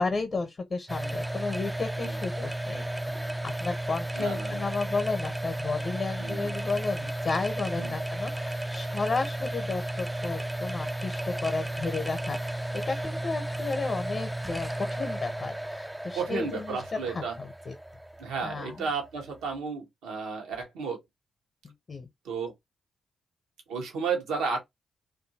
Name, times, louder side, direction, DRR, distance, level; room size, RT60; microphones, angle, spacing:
voice 1, 0.0-2.9 3.2-3.3 3.6-16.8 17.4-17.7 18.4-18.9 21.9-22.1, left 4 dB, 50° left, 0.7 m, -33 dB
sound 1, 0.9-19.6, right 1 dB, 10° right, 0.3 m, -34 dB
voice 2, 4.1-4.7 6.2-6.5 7.8-7.9 16.1-17.4 18.2-21.0 22.2-22.5 23.7-24.6, right 5 dB, 80° right, 0.9 m, -33 dB
2.6 x 2.5 x 2.8 m
hypercardioid pair, 40°, 0 cm